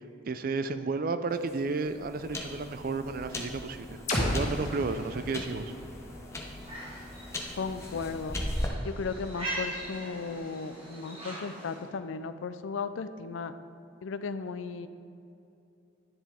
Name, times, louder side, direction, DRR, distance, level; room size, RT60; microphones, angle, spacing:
voice 1, 0.3-5.7, right 4 dB, 50° right, 11 dB, 0.4 m, -32 dB
sound 1, 1.3-8.7, left 1 dB, 15° left, 0.8 m, -39 dB
sound 2, 4.1-7.9, left 1 dB, 40° left, 2.0 m, -35 dB
sound 3, 6.6-11.9, right 1 dB, 30° right, 1.9 m, -41 dB
voice 2, 7.6-8.4 8.8-13.6 14.0-14.9, left 4 dB, 85° left, 12 dB, 0.4 m, -35 dB
9.9 x 7.2 x 3.5 m, 2.7 s
head